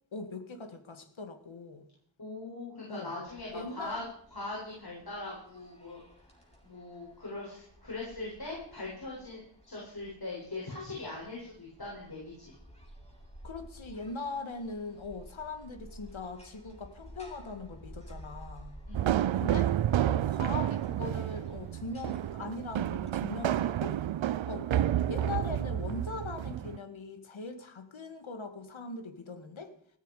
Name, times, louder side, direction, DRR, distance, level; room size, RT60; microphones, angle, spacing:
voice 1, 0.1-1.8 2.9-3.1 3.5-4.1 13.4-18.8 19.4-19.7 20.1-24.0 24.5-29.7, left 3 dB, 90° left, 8 dB, 2.0 m, -40 dB
voice 2, 2.2-4.0 4.3-6.0 6.6-12.5 18.9-19.3, left 2 dB, 50° left, -4 dB, 7.3 m, -41 dB
sound 1, 3.3-23.1, equal, 15° left, 7.4 m, -53 dB
sound 2, 18.9-26.8, right 11 dB, 80° right, 0.5 m, -30 dB
17.0 x 14.0 x 4.9 m, 0.66 s
wide cardioid pair, 50°, 46 cm